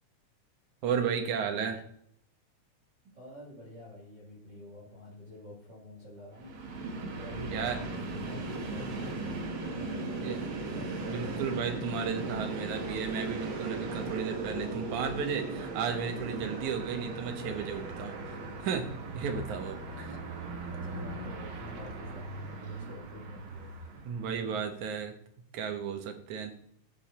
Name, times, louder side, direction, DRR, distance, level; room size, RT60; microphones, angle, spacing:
voice 1, 0.8-1.8 7.5-7.8 10.2-10.4 11.1-18.9 19.1-20.1 24.0-25.1 25.5-26.5, right 7 dB, 70° right, 6 dB, 2.7 m, -34 dB
voice 2, 3.0-6.6 7.2-10.9 19.9-24.0 24.7-24.8, left 1 dB, 35° right, -8 dB, 3.6 m, -48 dB
Train, 6.3-24.5, right 2 dB, 50° right, 1.9 m, -38 dB
14.0 x 7.1 x 4.3 m, 0.69 s
omnidirectional pair, 3.6 m